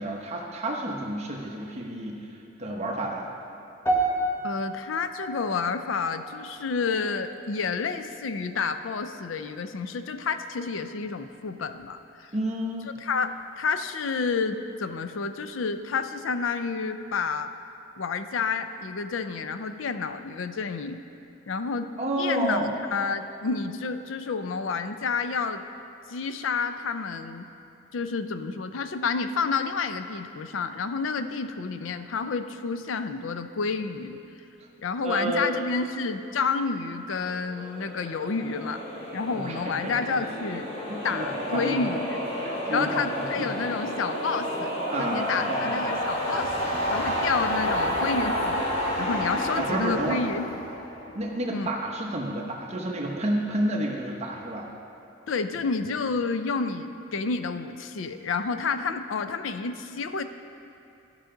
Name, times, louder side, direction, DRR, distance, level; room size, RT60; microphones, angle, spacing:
voice 1, 0.0-2.2 2.6-3.3 12.3-12.9 22.0-22.7 35.0-35.6 39.3-40.2 40.9-41.8 42.4-43.5 44.9-45.8 49.6-50.2 51.1-54.7, right 1 dB, 35° right, 0 dB, 1.0 m, -30 dB
sound 1, 3.9-8.2 8.5-8.9 9.5-9.6, right 2 dB, 15° left, 0.9 m, -32 dB
voice 2, 4.4-12.3 13.0-17.5 18.0-21.0 21.5-21.9 22.2-25.6 26.1-27.5 27.9-34.2 34.8-38.8 39.1-40.7 41.0-42.2 42.7-48.7 49.0-50.4 51.5-51.7 55.3-60.2, left 4 dB, 85° left, 9 dB, 0.5 m, -30 dB
sound 2, 37.3-51.6, equal, 30° left, 1.8 m, -30 dB
14.0 x 5.6 x 3.8 m, 2.8 s
head